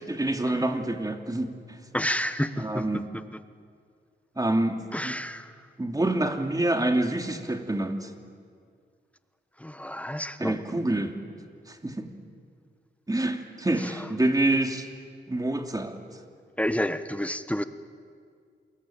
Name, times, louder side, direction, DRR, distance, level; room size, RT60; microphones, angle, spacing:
voice 1, 0.1-1.8 2.6-3.0 4.4-5.2 5.8-8.1 10.4-11.1 11.7-12.1 13.1-14.9 15.3-16.0, right 1 dB, 20° right, 5 dB, 2.7 m, -27 dB
voice 2, 1.9-3.4 4.9-5.5 9.6-10.8 13.8-14.1 16.6-17.6, equal, 5° left, 11 dB, 1.2 m, -30 dB
28.5 x 21.5 x 9.1 m, 2.2 s
cardioid pair, 75°, 19 cm